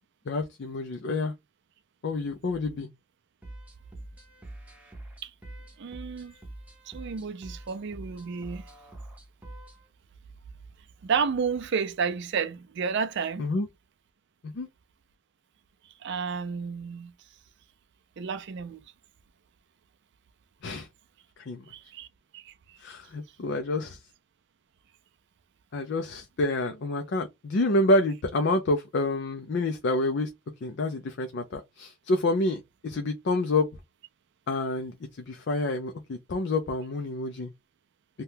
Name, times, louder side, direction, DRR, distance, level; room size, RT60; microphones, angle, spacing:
voice 1, 0.3-1.3 2.0-2.9 13.4-13.7 14.4-14.7 20.6-20.9 21.5-21.6 22.8-24.0 25.7-30.3 30.6-33.7 34.5-35.0 35.3-37.5, left 2 dB, 50° left, 0.4 m, -28 dB
sound 1, 3.4-9.9, right 1 dB, 5° right, 0.7 m, -45 dB
voice 2, 5.8-6.3 6.9-8.6 11.0-13.4 16.0-17.1 18.2-18.8 21.7-22.1 22.3-22.5, right 6 dB, 50° right, 0.4 m, -31 dB
2.8 x 2.2 x 3.4 m
head